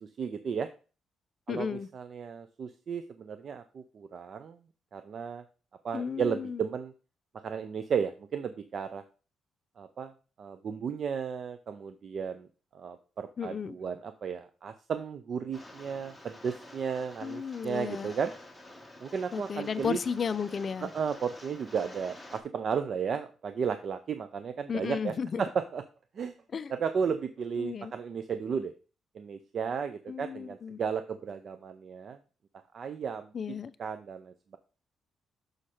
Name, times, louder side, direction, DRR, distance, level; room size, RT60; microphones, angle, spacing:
voice 1, 0.2-0.7 1.5-4.6 4.9-5.4 5.8-6.9 7.4-9.0 9.8-10.1 10.4-12.5 12.7-18.3 19.0-20.0 20.9-25.8 26.2-26.4 26.7-28.7 29.1-32.2 32.7-33.3 33.8-34.6, right 6 dB, 50° right, 0.5 m, -34 dB
voice 2, 1.5-1.9 5.9-6.6 13.4-13.8 17.2-18.1 19.3-20.9 24.7-25.4 26.5-26.7 27.6-27.9 30.1-30.8 33.3-33.7, left 6 dB, 40° left, 0.4 m, -34 dB
Rain, 15.5-22.4, left 1 dB, ahead, 1.2 m, -49 dB
6.4 x 4.3 x 4.8 m
cardioid pair, 130°, 0 cm